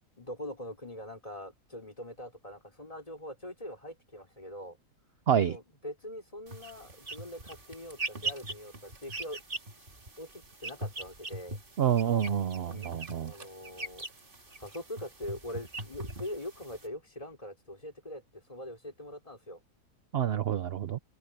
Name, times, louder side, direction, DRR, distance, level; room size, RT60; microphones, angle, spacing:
voice 1, 0.2-4.8 5.5-9.9 10.2-11.6 12.6-14.1 14.6-19.6, left 1 dB, 20° left, 4.2 m, -43 dB
sound 1, 6.5-16.9, right 2 dB, 30° right, 2.2 m, -41 dB
voice 2, 11.8-13.3 20.1-21.0, right 9 dB, 55° right, 0.7 m, -28 dB
open air
omnidirectional pair, 1.8 m